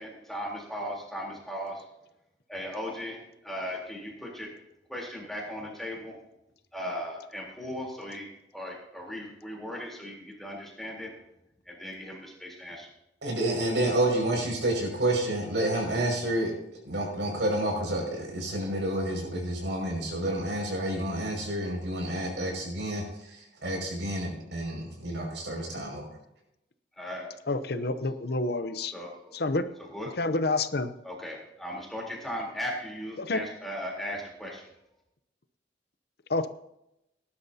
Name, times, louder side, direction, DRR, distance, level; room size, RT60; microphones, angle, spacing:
voice 1, 0.0-1.8 2.5-4.5 4.9-6.2 6.7-8.3 8.5-11.1 11.7-12.9 27.0-27.3 28.9-29.2 29.9-30.1 31.0-34.6, equal, ahead, -3 dB, 3.6 m, -37 dB
voice 2, 13.2-16.5 16.8-26.0, right 1 dB, 85° right, 0 dB, 5.8 m, -29 dB
voice 3, 27.5-28.9 29.3-29.7 30.2-30.9 33.2-33.4 36.3-36.5, left 2 dB, 60° left, 11 dB, 0.7 m, -28 dB
19.0 x 11.5 x 2.8 m, 0.85 s
head